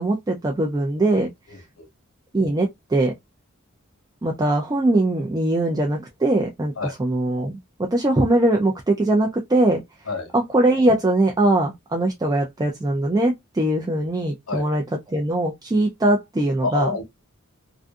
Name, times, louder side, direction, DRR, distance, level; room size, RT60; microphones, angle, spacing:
voice 1, 0.0-1.3 2.3-3.1 4.2-7.6 7.9-9.8 10.3-14.8 15.1-16.9, right 1 dB, 20° right, 0.3 m, -21 dB
voice 2, 1.5-1.9 6.8-6.9 10.1-10.3 14.5-14.7 16.6-17.0, left 4 dB, 85° left, 0.9 m, -28 dB
2.5 x 2.5 x 2.2 m
head